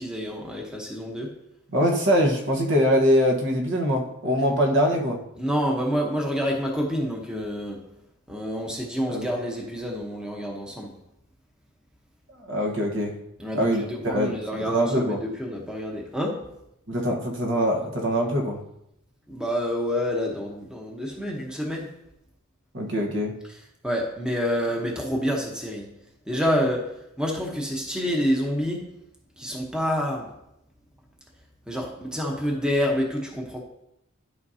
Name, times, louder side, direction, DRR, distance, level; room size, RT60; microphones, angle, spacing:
voice 1, 0.0-1.3 5.4-7.9 8.3-10.9 13.4-16.5 19.3-21.9 23.8-25.9 26.3-28.9 29.4-30.3 31.7-33.6, equal, 5° right, -1 dB, 1.0 m, -28 dB
voice 2, 1.7-5.2 9.1-9.3 12.5-13.2 13.5-15.2 16.9-18.6 22.7-23.3, equal, 60° right, 0 dB, 1.3 m, -23 dB
11.5 x 5.2 x 2.8 m, 0.82 s
head